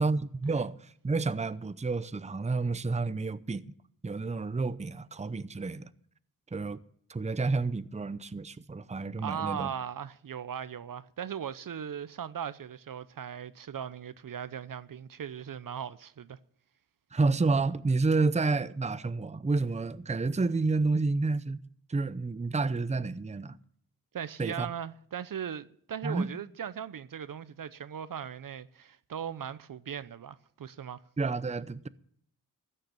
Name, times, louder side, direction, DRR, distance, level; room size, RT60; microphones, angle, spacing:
voice 1, 0.0-3.7 4.0-5.9 6.5-6.8 7.1-9.7 17.1-21.6 21.9-23.6 24.4-24.7 26.0-26.3 31.2-31.9, right 3 dB, 15° right, 0.7 m, -30 dB
voice 2, 9.2-16.4 24.1-31.0, right 8 dB, 55° right, 0.7 m, -38 dB
14.5 x 6.6 x 8.8 m
cardioid pair, 45°, 39 cm